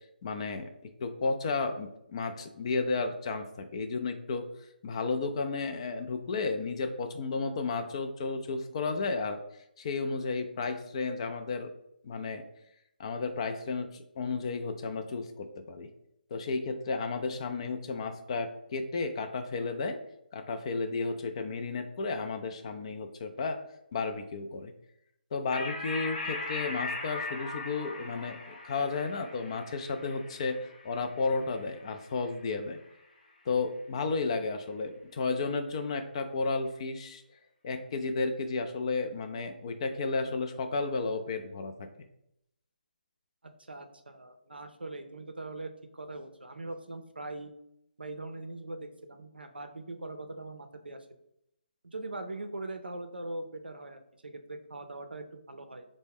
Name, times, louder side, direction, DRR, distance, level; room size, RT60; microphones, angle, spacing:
voice 1, 0.2-4.5 4.8-9.4 9.8-11.7 12.0-12.5 13.0-15.9 16.3-20.0 20.3-23.6 23.9-24.7 25.3-32.8 33.5-37.2 37.6-41.9, left 4 dB, 35° left, 7 dB, 0.3 m, -33 dB
sound 1, 25.5-32.4, left 2 dB, 55° left, 0.7 m, -39 dB
voice 2, 43.7-47.5 48.0-51.1 51.8-55.9, right 2 dB, 85° right, 6 dB, 0.5 m, -41 dB
4.3 x 2.1 x 3.4 m, 0.81 s
figure-of-eight pair, 145°, 5 cm